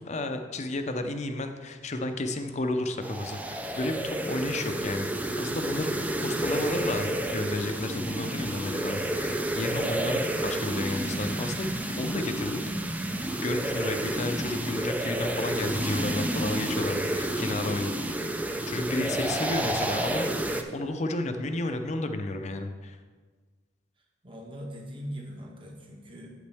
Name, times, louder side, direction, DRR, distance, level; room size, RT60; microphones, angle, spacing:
voice 1, 0.0-5.9 6.2-11.7 12.0-12.6 12.9-13.0 13.3-18.1 18.7-20.3 20.7-23.0, left 2 dB, 40° left, 7 dB, 0.6 m, -32 dB
sound 1, 3.0-20.6, right 1 dB, 10° right, 0.4 m, -30 dB
voice 2, 24.2-26.3, equal, 30° right, 1 dB, 1.2 m, -41 dB
8.2 x 7.9 x 3.4 m, 1.4 s
head